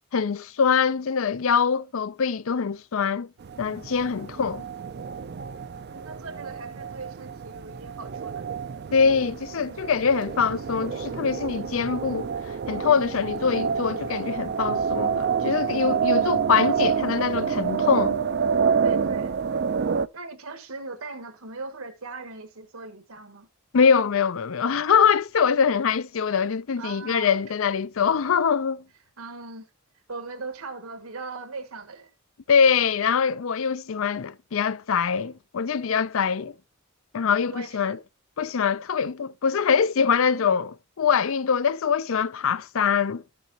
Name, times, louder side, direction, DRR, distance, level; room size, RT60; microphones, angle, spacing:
voice 1, 0.1-3.3 3.6-4.6 8.9-12.3 12.7-18.2 23.7-28.8 32.5-36.5 37.1-38.0 38.4-43.2, left 6 dB, 65° left, 0.5 m, -23 dB
sound 1, 3.4-20.1, right 6 dB, 50° right, 0.4 m, -28 dB
voice 2, 4.1-4.4 5.9-8.5 18.8-19.4 20.1-23.5 26.8-27.4 29.2-29.7 30.1-32.1 37.5-38.0, right 3 dB, 85° right, 1.5 m, -39 dB
13.0 x 6.9 x 2.8 m
head